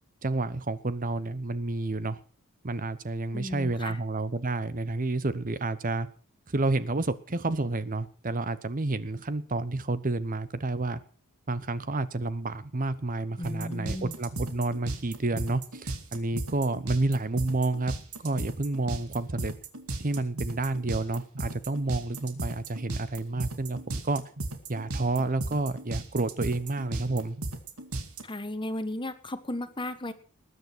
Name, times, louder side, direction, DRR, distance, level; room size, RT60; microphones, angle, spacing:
voice 1, 0.2-2.2 2.6-6.1 6.5-11.0 11.5-17.9 18.2-19.5 20.0-24.2 24.7-27.4, right 2 dB, 40° right, 14 dB, 0.9 m, -30 dB
voice 2, 3.3-4.0 13.4-14.1 28.2-30.1, left 1 dB, 20° left, 11 dB, 1.3 m, -35 dB
sound 1, 13.4-28.2, right 2 dB, 85° right, 2.4 m, -35 dB
20.5 x 9.7 x 6.1 m, 0.40 s
head